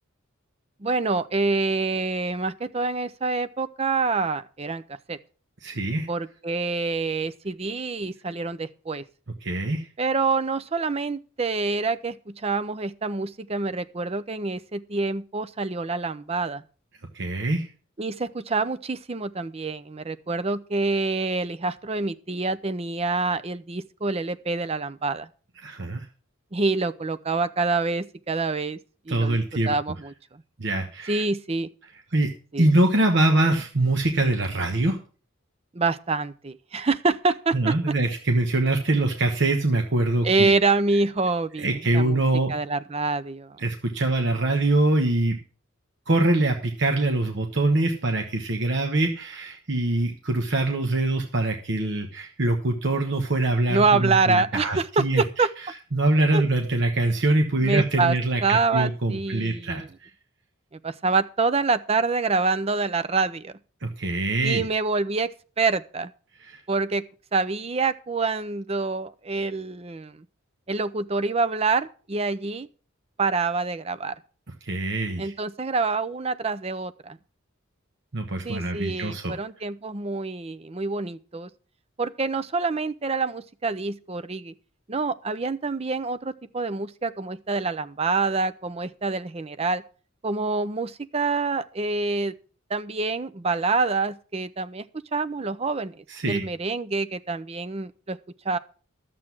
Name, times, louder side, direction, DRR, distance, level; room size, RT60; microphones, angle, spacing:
voice 1, 0.8-4.8 5.1-5.2 6.1-9.0 10.0-16.6 18.0-25.3 26.5-28.8 29.1-29.4 29.7-30.4 31.1-31.7 32.5-32.7 35.7-37.9 40.2-42.2 42.5-43.6 53.7-55.5 56.3-56.4 57.6-58.2 58.4-59.9 60.8-63.5 64.4-65.3 65.6-66.1 66.7-67.0 67.3-70.2 70.7-72.7 73.2-74.1 75.2-77.2 78.4-81.5 82.0-84.5 84.9-89.8 90.2-92.3 92.7-94.8 95.1-98.2 98.4-98.6, right 3 dB, 30° right, 0.6 m, -26 dB
voice 2, 5.6-6.1 9.4-9.9 17.1-17.7 25.6-26.1 29.1-29.7 30.6-31.2 32.1-32.3 32.6-35.0 37.5-40.5 41.6-42.5 43.6-45.4 46.1-55.2 55.9-60.1 63.8-64.6 66.4-66.6 74.6-75.3 78.1-79.4 96.1-96.4, right 2 dB, 60° right, 1.2 m, -24 dB
11.5 x 7.7 x 6.0 m
head